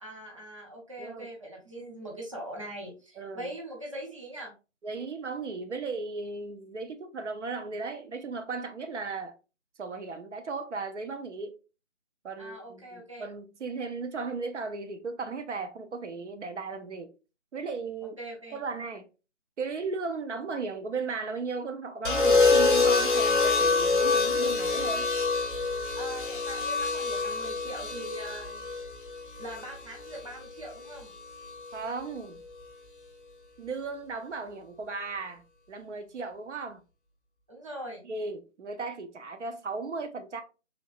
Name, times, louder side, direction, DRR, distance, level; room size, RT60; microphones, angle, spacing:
voice 1, 0.0-4.5 12.4-13.3 18.2-18.6 25.9-28.7 29.4-31.1 37.5-38.0, right 1 dB, 25° right, 0.6 m, -41 dB
voice 2, 1.0-1.3 3.2-3.5 4.8-9.3 9.8-11.6 12.2-17.1 17.5-18.2 18.5-19.1 19.6-25.1 31.7-32.4 33.6-36.8 38.0-40.4, right 4 dB, 70° right, 0.6 m, -36 dB
sound 1, 22.0-30.2 31.4-31.8, left 4 dB, 45° left, 0.6 m, -26 dB
3.2 x 2.8 x 2.3 m
figure-of-eight pair, 165°, 37 cm